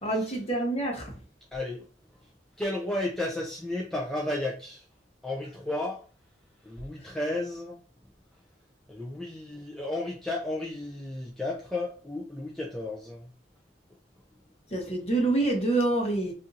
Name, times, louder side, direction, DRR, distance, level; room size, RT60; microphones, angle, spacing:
voice 1, 0.0-1.1 7.0-7.1 14.7-16.3, right 2 dB, 35° left, 0.9 m, -27 dB
voice 2, 1.5-1.8 2.6-4.8 5.2-6.0 6.6-7.8 8.9-13.3, left 1 dB, 5° left, 0.4 m, -33 dB
2.6 x 2.5 x 3.8 m
head